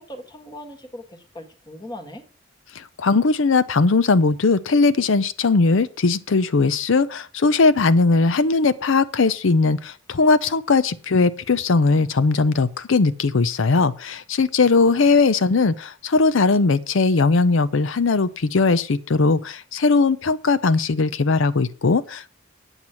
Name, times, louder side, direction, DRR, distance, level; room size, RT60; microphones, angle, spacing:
voice 1, 0.0-2.2, left 1 dB, 20° left, 1.5 m, -39 dB
voice 2, 2.7-22.4, left 3 dB, 70° left, 0.6 m, -19 dB
9.0 x 8.0 x 5.7 m
head